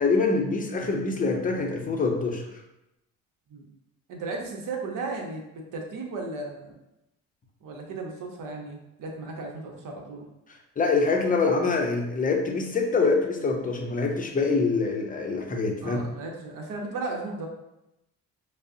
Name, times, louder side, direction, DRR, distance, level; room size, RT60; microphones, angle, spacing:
voice 1, 0.0-2.4 10.8-16.0, left 4 dB, 25° left, 1 dB, 0.6 m, -25 dB
voice 2, 4.1-6.7 7.6-10.2 15.8-17.5, right 3 dB, 65° right, 1 dB, 0.9 m, -35 dB
5.1 x 2.1 x 2.6 m, 0.89 s
cardioid pair, 105°, 34 cm